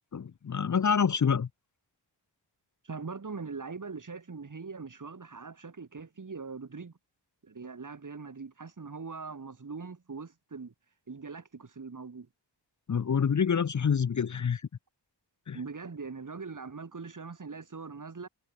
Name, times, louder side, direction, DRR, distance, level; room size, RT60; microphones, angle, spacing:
voice 1, 0.1-1.5 12.9-14.6 15.5-15.6, left 7 dB, 40° left, 0.8 m, -27 dB
voice 2, 2.8-6.9 7.4-10.7 11.1-12.3 15.5-18.3, right 4 dB, 45° right, 6.8 m, -41 dB
wide cardioid pair, 125°, 43 cm